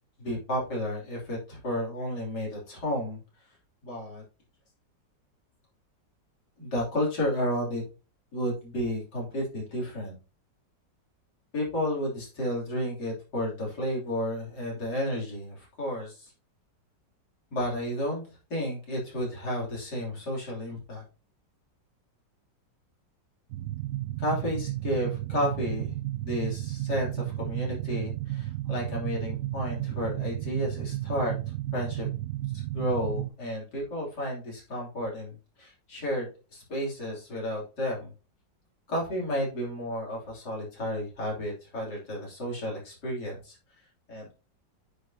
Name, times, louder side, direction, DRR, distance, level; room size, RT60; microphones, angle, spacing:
voice 1, 0.2-3.2 3.8-4.2 6.6-7.8 8.3-10.1 11.5-16.3 17.5-18.2 18.5-21.0 24.2-26.0 26.2-31.3 31.7-32.1 32.7-38.1 38.9-43.6 44.1-44.3, equal, 60° left, -4 dB, 3.8 m, -32 dB
sound 1, 23.5-33.3, right 15 dB, 75° right, 1.1 m, -33 dB
9.3 x 4.9 x 2.8 m, 0.34 s
omnidirectional pair, 2.0 m